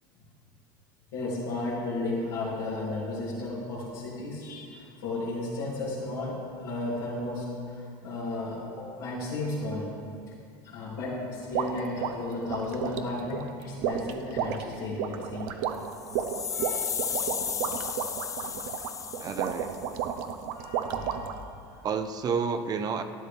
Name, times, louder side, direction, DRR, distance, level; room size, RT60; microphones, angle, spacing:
voice 1, 1.1-9.9 10.6-15.7 16.5-16.9 20.5-21.4 21.7-21.8, left 2 dB, 90° left, -10 dB, 2.8 m, -34 dB
sound 1, 11.5-21.4, right 8 dB, 70° right, 0.7 m, -33 dB
sound 2, 15.8-20.0, left 7 dB, 30° left, 0.5 m, -34 dB
voice 2, 19.2-19.7 21.8-23.0, right 6 dB, 35° right, 7 dB, 0.7 m, -30 dB
12.0 x 10.5 x 3.4 m, 2.3 s
supercardioid pair, 110°, 11 cm